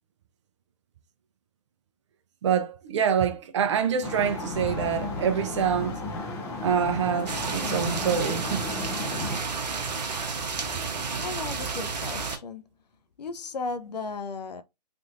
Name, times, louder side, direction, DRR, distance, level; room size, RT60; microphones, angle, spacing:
voice 1, 2.4-6.0 6.6-8.6, right 7 dB, 45° right, 0.5 m, -26 dB
sound 1, 4.0-9.4, left 2 dB, 10° left, 0.4 m, -34 dB
sound 2, 7.3-12.4, right 4 dB, 80° right, 0.8 m, -31 dB
voice 2, 11.2-12.7 13.2-14.6, left 4 dB, 75° left, 0.6 m, -35 dB
3.4 x 2.5 x 2.5 m
hypercardioid pair, 140°, 21 cm